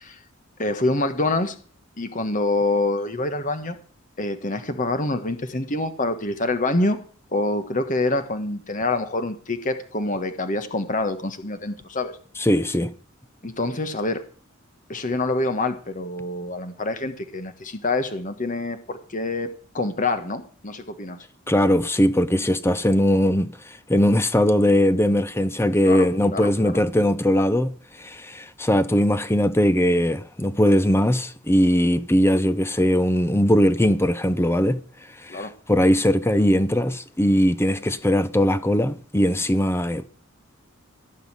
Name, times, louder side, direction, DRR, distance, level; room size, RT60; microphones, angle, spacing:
voice 1, 0.6-1.5 2.0-3.8 4.2-7.0 7.3-12.2 13.4-14.2 14.9-19.5 19.7-21.2 25.8-26.8 35.3-35.5, left 2 dB, 35° left, 1.4 m, -26 dB
voice 2, 12.4-12.9 21.5-34.8 35.2-40.1, equal, 10° left, 0.7 m, -20 dB
16.5 x 5.5 x 9.7 m
head